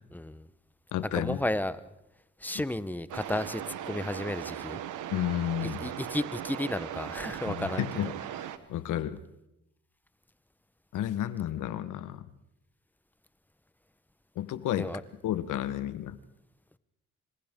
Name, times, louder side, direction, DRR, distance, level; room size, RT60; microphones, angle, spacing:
voice 1, 0.1-0.5 1.1-1.8 2.4-4.8 5.6-7.8 14.8-15.0, left 1 dB, 5° left, 14 dB, 1.0 m, -33 dB
voice 2, 0.9-1.4 2.5-2.6 5.1-5.8 7.5-8.1 8.4-9.2 10.9-12.3 14.4-14.9 15.2-16.2, left 12 dB, 85° left, 13 dB, 1.2 m, -32 dB
sound 1, 3.1-8.6, right 10 dB, 85° right, 1.4 m, -38 dB
28.5 x 26.0 x 3.7 m, 0.88 s
cardioid pair, 90°, 30 cm